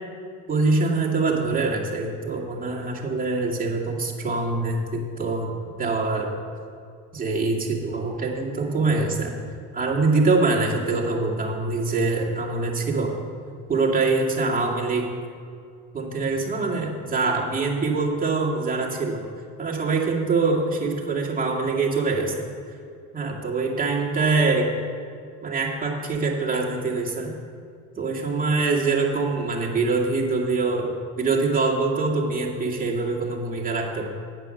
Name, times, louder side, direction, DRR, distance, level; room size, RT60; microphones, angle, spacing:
voice 1, 0.5-5.5 5.8-6.3 7.1-9.4 9.7-13.1 13.7-15.1 15.9-19.2 19.6-22.5 23.1-24.7 25.4-27.3 28.0-34.1, right 3 dB, 25° right, -3 dB, 2.4 m, -24 dB
8.9 x 8.0 x 6.4 m, 2.3 s
supercardioid pair, 75°, 35 cm